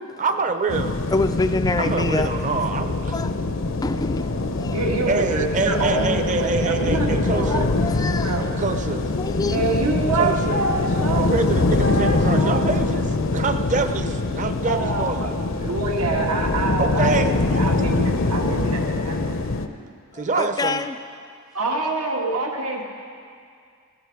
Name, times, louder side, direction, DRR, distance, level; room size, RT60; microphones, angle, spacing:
voice 1, 0.2-1.0 1.8-3.2 5.1-7.7 8.6-9.1 10.1-10.6 11.1-15.4 16.8-17.6 20.1-20.8, right 4 dB, 35° right, 8 dB, 0.7 m, -26 dB
sound 1, 0.7-19.7, left 2 dB, 60° left, 0.7 m, -23 dB
voice 2, 1.1-2.4 3.1-3.4 3.8-5.0 5.9-6.1 6.9-7.1 7.3-8.5 9.2-9.8 20.1-21.0, left 3 dB, 15° left, 9 dB, 0.3 m, -27 dB
voice 3, 4.7-7.6 8.1-8.5 9.5-11.3 11.8-12.6 14.6-15.3 15.6-19.2 21.5-22.8, right 3 dB, 90° right, 0 dB, 1.8 m, -26 dB
15.0 x 15.0 x 4.7 m, 2.3 s
head